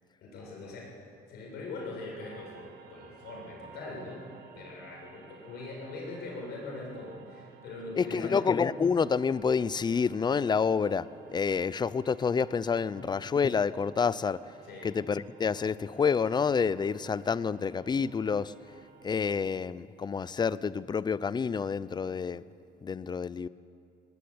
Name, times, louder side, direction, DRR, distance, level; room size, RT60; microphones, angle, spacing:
voice 1, 0.2-1.0 1.3-4.3 4.5-8.5 12.9-13.1 14.6-14.9, left 2 dB, 75° left, -1 dB, 7.3 m, -42 dB
sound 1, 2.2-19.5, right 7 dB, 75° right, 1.7 m, -56 dB
voice 2, 8.0-14.4 14.8-18.5 19.0-22.4 22.8-23.5, left 6 dB, 25° left, 18 dB, 0.6 m, -28 dB
19.0 x 19.0 x 8.6 m, 2.4 s
cardioid pair, 110°, 17 cm